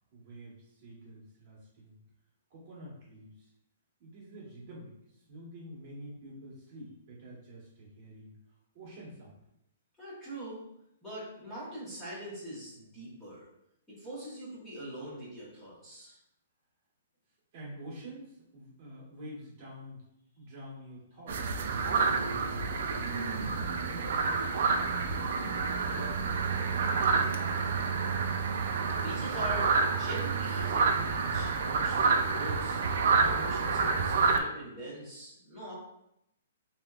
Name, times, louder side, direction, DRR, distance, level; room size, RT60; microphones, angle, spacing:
voice 1, 0.1-2.0 2.5-3.5 4.0-8.4 8.7-9.4 17.5-20.0 20.4-24.3 25.1-27.6, equal, 35° right, -5 dB, 1.3 m, -48 dB
voice 2, 10.0-10.7 11.0-13.5 13.9-16.2 28.8-35.7, equal, 5° left, -11 dB, 1.1 m, -42 dB
sound 1, 21.3-34.4, right 5 dB, 60° right, 0.4 m, -28 dB
3.5 x 2.8 x 2.3 m, 0.80 s
hypercardioid pair, 165°, 0 cm